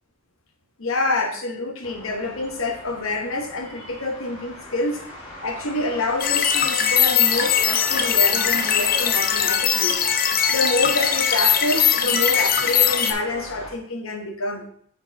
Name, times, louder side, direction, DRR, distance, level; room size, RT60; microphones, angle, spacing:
voice 1, 0.8-5.0 5.4-10.0 10.5-14.6, left 2 dB, 85° left, 4 dB, 1.2 m, -27 dB
sound 1, 1.8-13.7, left 1 dB, 30° left, 1.8 m, -39 dB
sound 2, 6.2-13.1, left 8 dB, 45° left, 0.6 m, -20 dB
5.3 x 4.4 x 4.6 m, 0.62 s
head